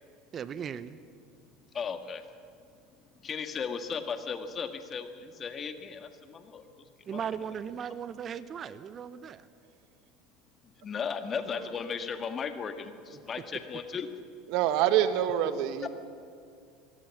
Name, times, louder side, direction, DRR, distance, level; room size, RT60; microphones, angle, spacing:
voice 1, 0.3-1.0 7.1-9.4 13.1-13.2, right 8 dB, 35° right, 15 dB, 0.8 m, -37 dB
voice 2, 1.7-2.2 3.2-6.7 7.1-7.2 10.8-14.3 15.8-15.9, left 6 dB, 35° left, 8 dB, 1.7 m, -36 dB
voice 3, 14.5-15.9, right 11 dB, 60° right, 11 dB, 1.4 m, -25 dB
25.5 x 17.5 x 5.9 m, 2.3 s
hypercardioid pair, 75°, 0 cm